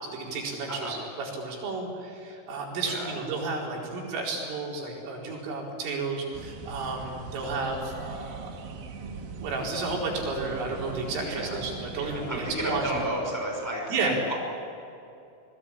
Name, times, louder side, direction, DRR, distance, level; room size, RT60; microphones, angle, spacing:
voice 1, 0.0-8.5 9.4-12.8 13.9-14.2, right 3 dB, 80° right, -2 dB, 7.1 m, -32 dB
voice 2, 0.7-1.0 2.8-3.2 11.1-11.6 11.9-13.9 14.3-14.4, right 1 dB, 5° left, -1 dB, 5.6 m, -32 dB
sound 1, 6.3-13.1, right 5 dB, 55° right, 3.1 m, -40 dB
29.0 x 21.0 x 8.8 m, 2.7 s
omnidirectional pair, 5.7 m